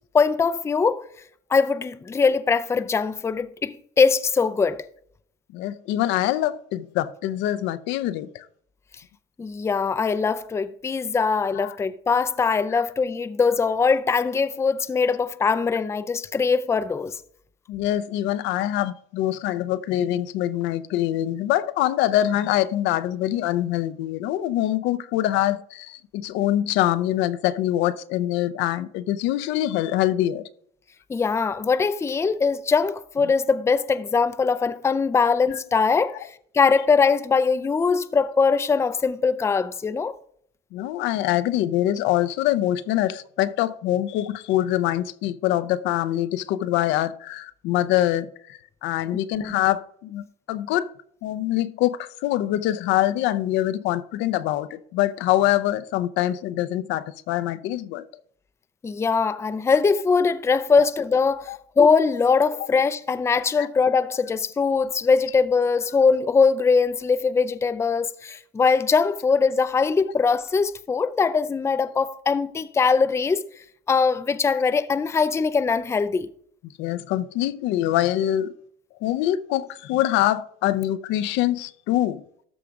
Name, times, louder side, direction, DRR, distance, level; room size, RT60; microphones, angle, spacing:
voice 1, 0.1-1.1 1.5-4.8 9.4-17.2 31.1-36.2 36.5-40.1 49.4-49.6 58.8-73.4 73.9-76.3, left 5 dB, 15° left, 0.4 m, -21 dB
voice 2, 5.5-8.5 11.5-11.8 12.7-12.8 17.7-30.4 35.5-35.6 40.7-50.9 51.2-58.1 61.5-61.6 63.6-63.7 76.8-78.5 79.0-82.2, left 13 dB, 75° left, 0.6 m, -24 dB
13.0 x 5.0 x 3.6 m
cardioid pair, 115°, 19 cm